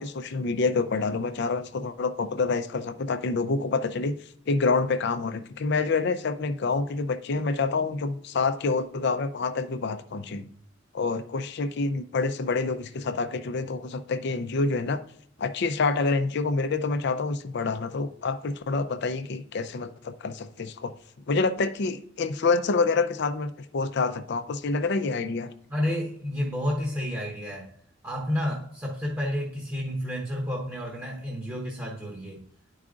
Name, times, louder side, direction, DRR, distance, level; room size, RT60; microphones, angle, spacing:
voice 1, 0.0-4.1 4.5-10.5 10.9-15.0 15.4-20.9 21.3-25.5, left 4 dB, 60° left, 9 dB, 0.5 m, -27 dB
voice 2, 25.7-27.7 28.0-32.4, left 1 dB, 10° right, -3 dB, 1.0 m, -30 dB
10.5 x 4.8 x 2.4 m, 0.65 s
head